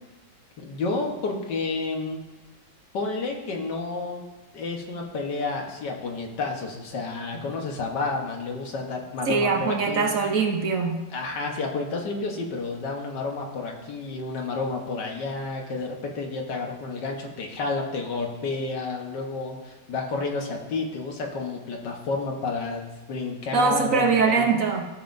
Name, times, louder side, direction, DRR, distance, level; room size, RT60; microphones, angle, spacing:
voice 1, 0.6-2.2 2.9-4.2 4.5-10.3 11.1-24.5, left 3 dB, 80° left, 1 dB, 1.8 m, -30 dB
voice 2, 9.3-11.0 23.5-24.9, right 4 dB, 60° right, 3 dB, 1.0 m, -22 dB
14.0 x 7.3 x 2.6 m, 1.2 s
omnidirectional pair, 1.9 m